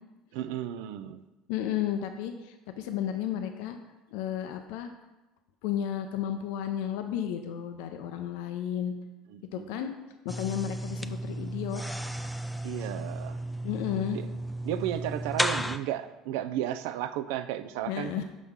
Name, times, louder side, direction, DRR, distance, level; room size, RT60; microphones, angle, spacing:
voice 1, 0.3-1.2 9.3-9.8 12.6-13.4 14.1-14.3 14.6-18.2, right 11 dB, 80° right, 12 dB, 0.3 m, -34 dB
voice 2, 1.5-3.8 4.1-4.9 5.6-8.9 9.5-9.9 10.2-11.8 13.6-14.2 17.9-18.2, left 10 dB, 80° left, 6 dB, 0.5 m, -32 dB
sound 1, 10.3-15.8, right 1 dB, 5° left, 0.3 m, -34 dB
6.1 x 5.4 x 3.6 m, 1.1 s
supercardioid pair, 100°, 0 cm